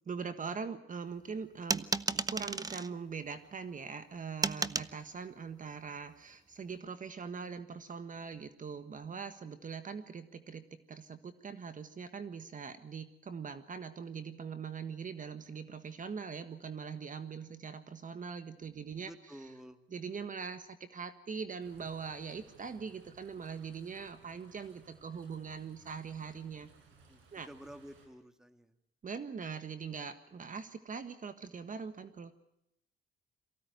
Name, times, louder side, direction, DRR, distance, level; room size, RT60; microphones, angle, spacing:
voice 1, 0.1-19.5 19.9-26.7 27.3-27.5 29.0-32.3, right 5 dB, 40° right, 10 dB, 1.6 m, -42 dB
sound 1, 1.7-2.9 4.4-4.9, right 3 dB, 20° right, 0.8 m, -33 dB
voice 2, 19.1-19.8 27.1-27.2 27.5-28.7, equal, 5° right, 9 dB, 2.0 m, -50 dB
sound 2, 21.6-28.1, right 5 dB, 90° right, 5.9 m, -62 dB
23.5 x 16.0 x 9.5 m, 0.84 s
cardioid pair, 90°, 20 cm